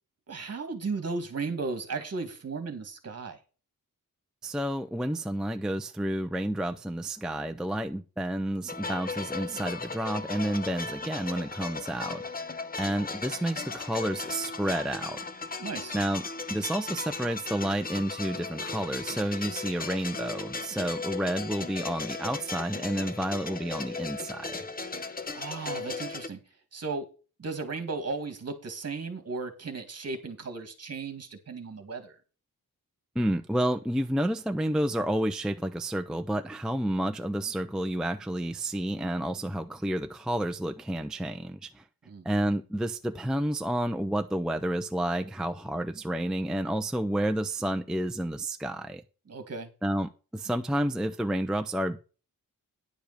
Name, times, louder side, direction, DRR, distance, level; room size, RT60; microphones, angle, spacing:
voice 1, 0.3-3.4 15.6-16.0 25.3-26.4 26.7-27.1 27.4-32.1 42.1-42.2 49.3-49.7, right 4 dB, 45° right, 2.1 m, -35 dB
voice 2, 4.4-12.2 12.8-15.2 15.9-16.2 16.5-24.6 33.2-41.8 42.2-49.0 49.8-52.0, right 1 dB, ahead, 0.4 m, -30 dB
sound 1, 8.7-26.3, left 4 dB, 25° left, 0.8 m, -37 dB
10.5 x 5.0 x 6.6 m
wide cardioid pair, 160°, 35 cm